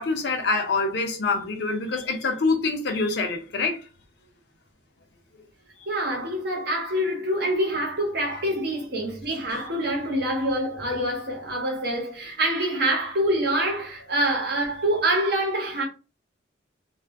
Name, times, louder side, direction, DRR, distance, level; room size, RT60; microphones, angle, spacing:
voice 1, 0.0-3.8 8.2-8.3, left 3 dB, 55° left, 0.6 m, -25 dB
voice 2, 5.9-15.8, right 1 dB, 50° right, 0.9 m, -26 dB
2.4 x 2.1 x 3.4 m
head